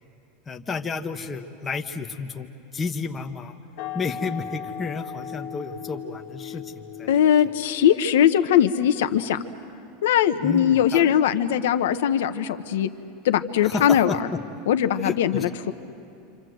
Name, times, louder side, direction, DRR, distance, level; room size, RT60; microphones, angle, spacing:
voice 1, 0.5-3.5 3.9-6.7 7.0-7.1 10.4-11.1 13.6-14.4 15.0-15.4, left 4 dB, 15° left, 3 dB, 1.1 m, -31 dB
sound 1, 3.8-9.2, left 8 dB, 55° left, 1.2 m, -38 dB
voice 2, 7.1-9.4 10.0-12.9 13.2-14.2 14.7-15.5, left 9 dB, 90° left, 10 dB, 1.1 m, -20 dB
27.0 x 27.0 x 7.9 m, 2.7 s
supercardioid pair, 160°, 0 cm